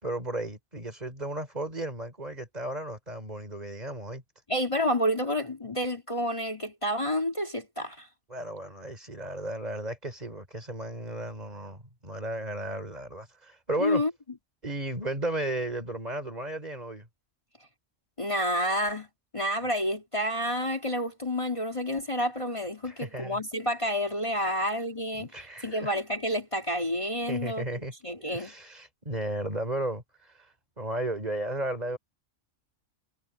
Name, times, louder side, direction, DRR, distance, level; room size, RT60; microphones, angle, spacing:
voice 1, 0.0-4.2 8.3-14.0 14.6-17.1 22.8-23.4 24.5-24.6 25.2-26.1 27.3-27.9 28.2-32.0, right 1 dB, 30° right, 4.2 m, -34 dB
voice 2, 4.5-8.1 13.8-14.1 18.2-19.1 19.3-25.3 25.6-27.7 28.0-28.5, equal, 25° left, 2.4 m, -29 dB
omnidirectional pair, 1.3 m